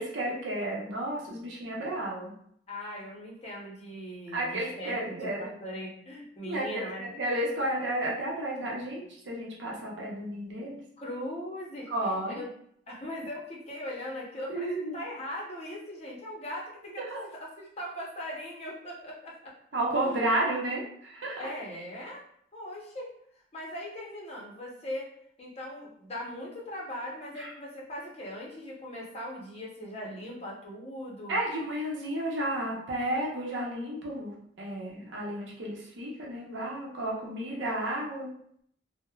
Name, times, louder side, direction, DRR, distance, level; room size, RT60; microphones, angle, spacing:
voice 1, 0.0-2.3 4.3-5.5 6.4-10.8 11.9-12.4 14.5-15.0 17.1-17.2 19.7-21.4 27.4-27.5 31.3-38.3, right 1 dB, 85° right, -3 dB, 0.6 m, -32 dB
voice 2, 2.7-7.1 11.0-12.5 12.9-19.5 20.0-20.3 21.4-22.2 22.5-23.1 23.5-25.1 25.4-31.4, left 1 dB, 35° left, -3 dB, 0.6 m, -40 dB
3.0 x 2.0 x 2.3 m, 0.68 s
head